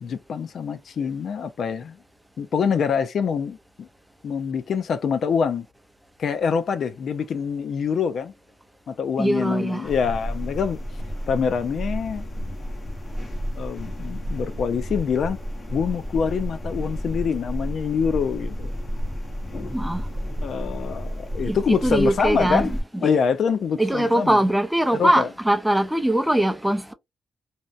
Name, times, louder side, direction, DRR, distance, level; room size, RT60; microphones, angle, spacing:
voice 1, 0.0-2.0 2.4-3.9 4.2-5.7 6.2-8.3 8.9-10.8 11.3-12.4 13.6-15.4 15.7-18.8 20.4-22.7 23.0-24.4 24.9-25.3, left 6 dB, 65° left, 0.3 m, -25 dB
voice 2, 9.2-9.9 19.7-20.1 21.4-22.7 23.8-26.9, right 1 dB, 5° right, 0.4 m, -21 dB
sound 1, 9.8-22.8, equal, 35° left, 0.7 m, -31 dB
2.7 x 2.1 x 2.4 m
cardioid pair, 115°, 0 cm